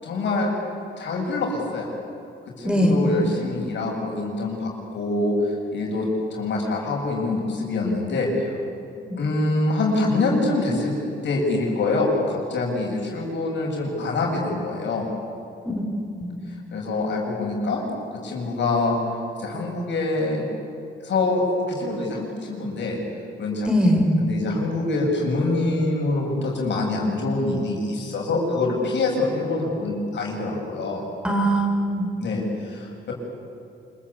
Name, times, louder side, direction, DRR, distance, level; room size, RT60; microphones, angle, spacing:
voice 1, 0.0-0.5 1.0-1.9 2.6-8.5 9.2-10.9 11.2-15.1 16.7-19.0 19.4-20.5 21.0-23.0 23.4-23.7 24.2-31.0 32.2-33.1, left 2 dB, 65° left, -1 dB, 7.9 m, -25 dB
voice 2, 2.6-2.9 8.9-9.2 15.6-15.8 16.2-16.3 23.7-24.1 31.2-32.1, equal, 5° right, 1 dB, 5.8 m, -21 dB
27.5 x 22.0 x 8.8 m, 2.5 s
cardioid pair, 90°, 20 cm